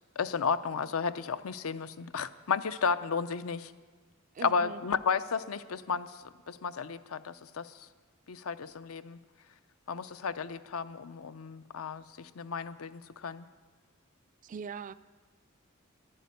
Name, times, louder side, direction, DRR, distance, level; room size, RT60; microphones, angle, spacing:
voice 1, 0.2-3.7 4.4-6.1 6.5-7.7 8.3-9.2 9.9-13.5, left 5 dB, 85° left, 13 dB, 0.6 m, -33 dB
voice 2, 4.4-4.8 14.4-14.9, right 6 dB, 35° right, 17 dB, 0.3 m, -41 dB
11.5 x 11.0 x 9.4 m, 1.5 s
head